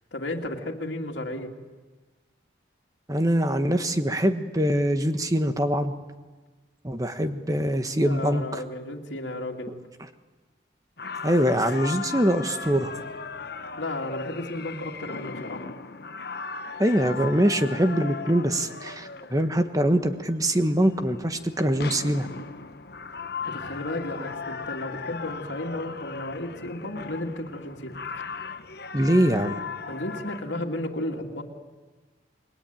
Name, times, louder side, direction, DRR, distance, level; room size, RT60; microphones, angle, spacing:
voice 1, 0.1-1.5 8.0-9.8 13.8-15.7 23.5-28.2 29.9-31.4, left 1 dB, 75° left, -1 dB, 2.7 m, -33 dB
voice 2, 3.1-5.9 6.8-8.6 11.2-12.9 16.8-22.3 28.9-29.6, equal, 20° right, 8 dB, 1.4 m, -23 dB
sound 1, 11.0-30.4, left 5 dB, 55° left, 1.1 m, -37 dB
29.0 x 22.0 x 9.2 m, 1.3 s
head